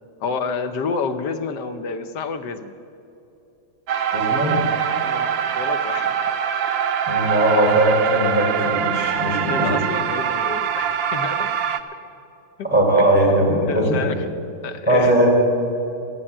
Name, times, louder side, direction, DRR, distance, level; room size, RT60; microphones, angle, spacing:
voice 1, 0.2-2.7 5.0-6.2 9.5-11.5 12.6-12.7 13.7-14.3 14.6-15.2, left 5 dB, 70° left, 8 dB, 1.4 m, -29 dB
sound 1, 3.9-11.8, right 8 dB, 80° right, 1.5 m, -23 dB
voice 2, 4.1-4.6 7.1-9.8 12.6-14.1 14.9-15.3, right 1 dB, 5° right, -4 dB, 4.2 m, -19 dB
14.0 x 9.9 x 8.7 m, 2.8 s
omnidirectional pair, 2.0 m